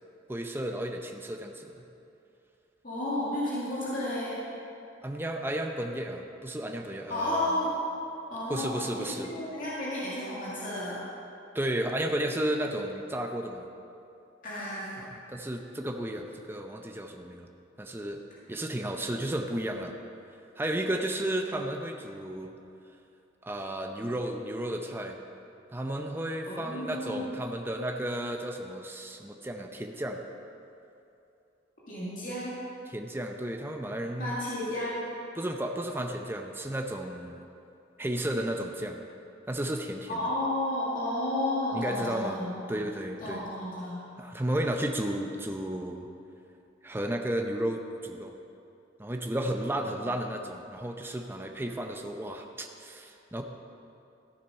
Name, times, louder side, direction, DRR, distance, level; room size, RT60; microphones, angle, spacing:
voice 1, 0.3-1.8 5.0-7.5 8.5-9.3 11.5-13.7 15.0-17.5 17.8-18.2 18.5-19.9 20.6-22.6 23.4-25.2 25.7-30.2 32.9-34.3 35.3-37.4 38.0-39.0 39.5-40.3 41.7-42.4 42.7-43.5 44.2-46.1 46.8-48.3 49.0-53.4, right 1 dB, 10° right, 3 dB, 0.6 m, -33 dB
voice 2, 2.8-4.4 7.1-7.7 8.3-11.0 14.4-15.0 21.2-21.3 26.5-27.5 31.9-32.5 34.2-35.0 40.1-42.7 43.2-44.0 49.8-49.9, left 1 dB, 45° left, -8 dB, 2.2 m, -32 dB
13.5 x 7.3 x 5.5 m, 2.7 s
head